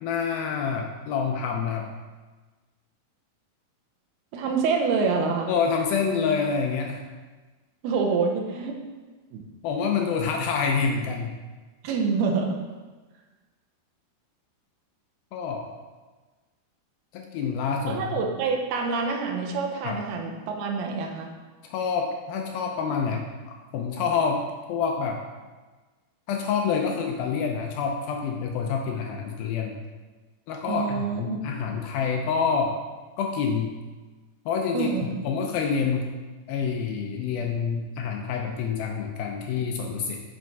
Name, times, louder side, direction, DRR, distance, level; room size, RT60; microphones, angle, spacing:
voice 1, 0.0-1.9 5.5-7.0 9.6-11.3 15.3-15.7 17.1-18.2 19.8-20.0 21.6-24.4 24.7-25.2 26.3-29.8 30.5-32.8 33.2-33.7 34.5-36.1 36.5-40.2, left 6 dB, 80° left, 2 dB, 2.3 m, -27 dB
voice 2, 4.3-5.5 7.8-8.8 9.3-9.5 11.8-12.6 17.9-21.3 30.7-31.4 34.7-35.1, right 5 dB, 75° right, 2 dB, 2.7 m, -26 dB
7.6 x 6.8 x 4.6 m, 1.3 s
omnidirectional pair, 4.7 m